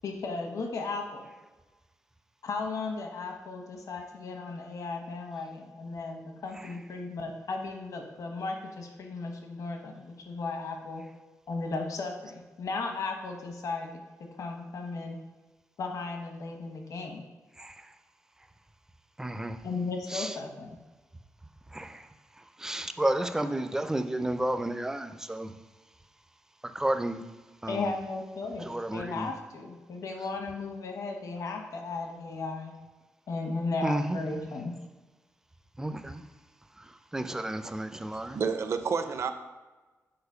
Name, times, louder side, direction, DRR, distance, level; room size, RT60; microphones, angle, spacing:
voice 1, 0.0-1.3 2.4-11.0 11.5-14.0 14.4-15.2 15.8-17.2 19.6-20.8 27.7-32.7 33.3-34.7, left 3 dB, 70° left, 3 dB, 1.0 m, -35 dB
voice 2, 17.6-17.9 19.2-19.6 20.1-20.4 21.7-22.1 22.4-25.6 26.7-27.2 27.6-27.9 28.6-29.3 33.8-34.2 35.8-36.2 36.8-38.4, right 1 dB, 10° right, 9 dB, 0.4 m, -32 dB
voice 3, 38.1-39.3, right 5 dB, 55° right, 8 dB, 0.6 m, -30 dB
6.9 x 4.3 x 5.4 m, 1.2 s
wide cardioid pair, 155°, 6 cm